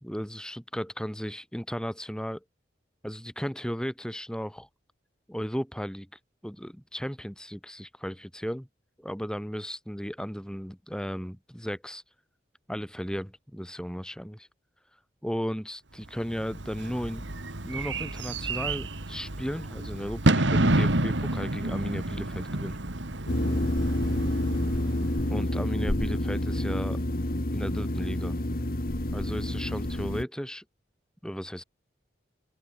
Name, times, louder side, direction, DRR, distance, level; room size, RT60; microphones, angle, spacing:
voice 1, 0.0-2.4 3.0-4.7 5.3-6.1 6.4-8.7 9.0-12.0 12.7-14.5 15.2-22.8 25.3-27.0 27.5-28.4 29.1-30.6 31.2-31.6, equal, 5° left, 4.6 m, -35 dB
Bird / Fireworks, 16.2-25.4, right 2 dB, 80° right, 2.4 m, -29 dB
sound 1, 23.3-30.2, left 1 dB, 50° left, 1.8 m, -28 dB
open air
head